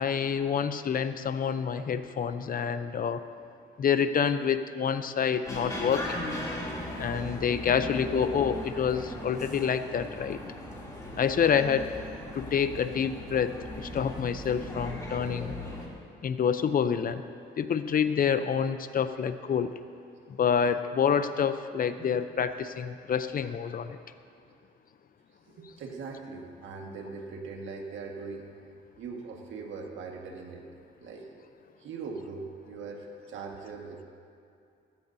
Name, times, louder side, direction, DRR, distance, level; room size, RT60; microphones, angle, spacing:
voice 1, 0.0-3.2 3.8-6.2 7.0-10.4 11.2-11.9 12.3-15.5 16.2-17.2 17.6-19.7 20.4-24.0, left 7 dB, 45° left, 11 dB, 0.6 m, -27 dB
sound 1, 5.4-15.9, left 1 dB, 15° left, 3.0 m, -38 dB
voice 2, 7.6-8.2 11.5-11.6 15.2-15.4 22.0-22.2 25.6-28.5 29.0-30.6 31.0-31.3 31.8-34.0, right 4 dB, 75° right, 1 dB, 1.7 m, -41 dB
16.0 x 14.5 x 2.7 m, 2.5 s
cardioid pair, 90°, 20 cm